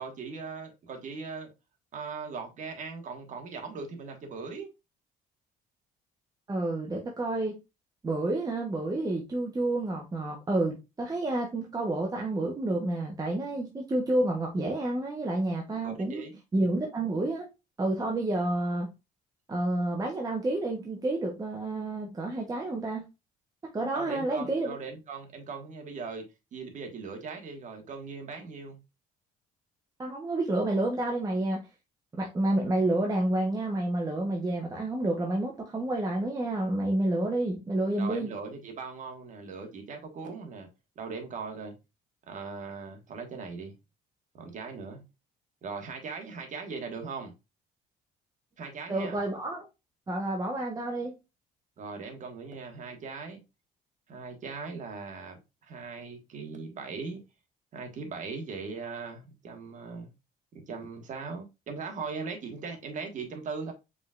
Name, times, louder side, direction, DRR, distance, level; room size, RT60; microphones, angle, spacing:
voice 1, 0.0-1.5 1.9-4.7 15.8-16.4 23.9-26.3 26.5-28.8 38.0-40.7 40.9-41.7 42.3-43.7 44.3-45.0 45.6-47.3 48.6-49.2 51.8-53.4 54.1-57.2 57.7-60.1 60.5-63.7, right 4 dB, 50° right, 1.4 m, -39 dB
voice 2, 6.5-7.6 8.0-16.2 16.5-17.5 17.8-18.9 19.5-23.0 23.7-24.7 30.0-31.7 32.2-38.3 48.9-49.7 50.1-51.2, right 2 dB, 20° right, 0.9 m, -29 dB
5.0 x 3.7 x 2.4 m
cardioid pair, 110°, 17 cm